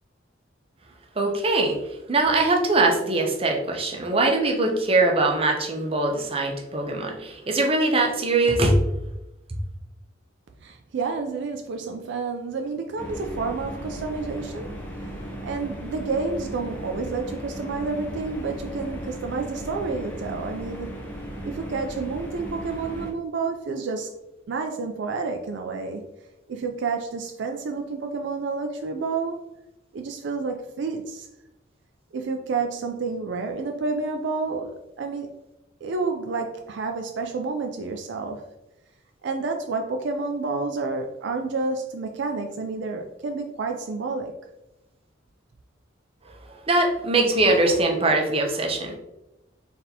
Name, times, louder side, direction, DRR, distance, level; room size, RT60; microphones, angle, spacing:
voice 1, 1.2-1.7 2.1-8.8 9.5-9.6 46.5-49.0, right 2 dB, 30° right, 1 dB, 0.6 m, -22 dB
voice 2, 10.6-14.7 15.4-24.1 24.5-26.1 26.5-29.4 29.9-31.3 32.1-35.4 35.8-38.4 39.2-44.4, right 4 dB, 65° right, 3 dB, 0.4 m, -30 dB
sound 1, 13.0-23.1, equal, 10° left, 0.7 m, -36 dB
4.0 x 3.4 x 2.8 m, 0.94 s
head